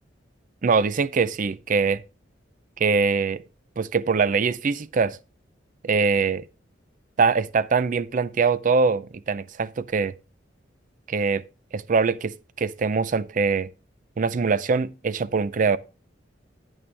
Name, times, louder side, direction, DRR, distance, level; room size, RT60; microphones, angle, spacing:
voice 1, 0.6-2.0 2.8-3.4 3.8-5.2 5.8-6.4 7.2-10.1 11.1-11.4 11.7-13.7 14.2-15.8, right 5 dB, 45° right, 0.4 m, -23 dB
9.1 x 8.6 x 3.3 m
head